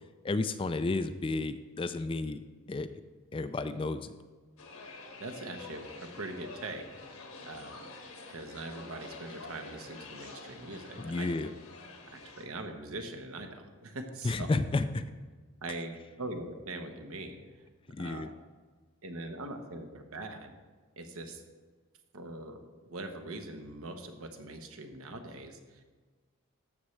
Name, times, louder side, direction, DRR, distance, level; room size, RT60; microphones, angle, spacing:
voice 1, 0.2-2.9 3.3-4.1 11.0-11.5 14.2-15.1 17.9-18.3, left 3 dB, 25° left, 11 dB, 0.3 m, -32 dB
sound 1, 4.6-12.4, left 3 dB, 80° left, 1.4 m, -47 dB
voice 2, 4.9-6.8 7.5-7.8 8.3-11.3 12.1-14.5 15.6-17.4 18.0-18.3 19.0-20.5 21.0-21.4 22.1-25.8, right 2 dB, 75° right, 5 dB, 1.1 m, -42 dB
13.0 x 7.3 x 3.2 m, 1.4 s
head